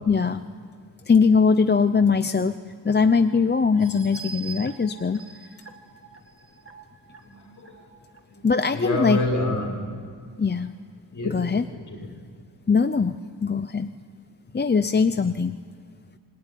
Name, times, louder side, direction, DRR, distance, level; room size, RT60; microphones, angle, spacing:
voice 1, 0.1-0.4 1.1-2.6 2.8-5.2 8.4-9.2 10.4-10.7 11.3-11.6 12.7-13.9 14.5-15.6, left 5 dB, 25° left, 10 dB, 0.6 m, -21 dB
sound 1, 3.7-8.2 8.7-8.8 9.2-9.3, right 5 dB, 30° right, 1.7 m, -44 dB
voice 2, 7.2-7.8 8.3-8.4 8.7-9.9 11.1-12.1, left 1 dB, 45° left, -1 dB, 6.2 m, -28 dB
26.5 x 21.0 x 9.9 m, 2.1 s
wide cardioid pair, 155°, 42 cm